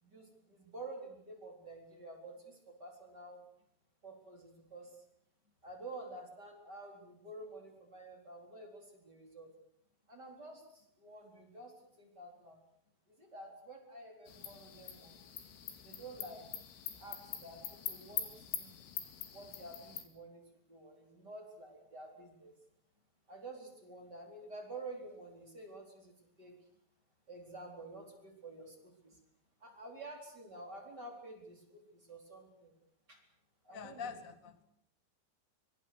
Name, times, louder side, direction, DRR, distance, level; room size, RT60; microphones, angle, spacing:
voice 1, 0.0-3.4 4.0-5.0 5.6-9.5 10.1-12.6 13.1-15.2 15.8-16.5 17.0-18.7 19.3-22.5 23.3-26.6 27.3-29.2 29.6-32.7 33.1-33.2 33.6-34.1, right 2 dB, 20° right, 1 dB, 4.1 m, -50 dB
sound 1, 14.3-20.0, left 10 dB, 80° left, 4.9 m, -44 dB
voice 2, 33.7-34.6, left 6 dB, 55° left, 9 dB, 0.8 m, -45 dB
24.5 x 24.5 x 6.7 m, 0.72 s
omnidirectional pair, 5.5 m